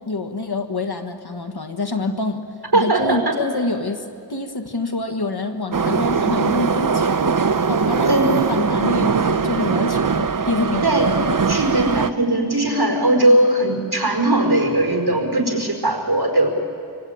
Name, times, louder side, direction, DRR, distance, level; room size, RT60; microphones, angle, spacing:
voice 1, 0.1-2.4 2.7-8.2 8.5-11.1, left 2 dB, 70° left, 6 dB, 1.8 m, -26 dB
voice 2, 2.7-3.2 8.1-8.3 10.8-11.1 11.5-16.5, right 1 dB, 70° right, 2 dB, 4.7 m, -19 dB
Subway metro underground, 5.7-12.1, right 5 dB, 50° right, 0.8 m, -20 dB
26.0 x 25.5 x 9.0 m, 2.4 s
wide cardioid pair, 50°, 40 cm